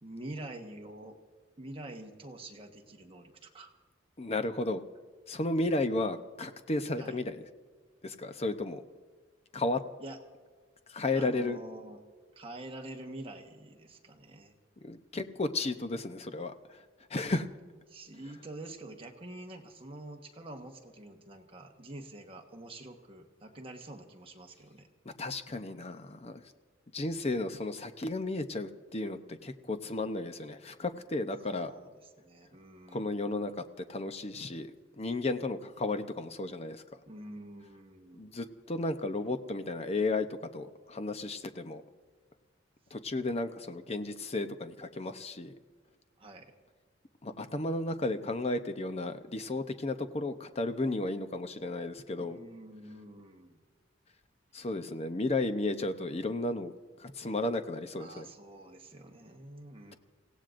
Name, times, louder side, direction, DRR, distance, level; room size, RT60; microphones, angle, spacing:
voice 1, 0.0-1.2 1.6-3.7 7.0-7.2 10.0-10.2 11.1-12.0 12.3-14.6 17.9-24.9 31.5-31.9 32.2-33.3 37.0-38.3 46.2-46.5 52.1-53.6 57.9-60.0, right 1 dB, 30° right, 2 dB, 1.3 m, -46 dB
voice 2, 4.2-4.8 5.3-7.4 8.0-8.8 9.5-9.8 10.9-11.6 14.8-16.8 17.1-17.5 25.1-26.4 26.9-31.7 32.9-33.6 33.9-34.7 35.0-37.0 38.1-40.3 40.5-41.8 42.9-45.5 47.2-52.4 54.5-56.7 57.0-58.3, left 2 dB, 30° left, 9 dB, 0.7 m, -33 dB
29.0 x 16.5 x 2.6 m, 1.5 s
head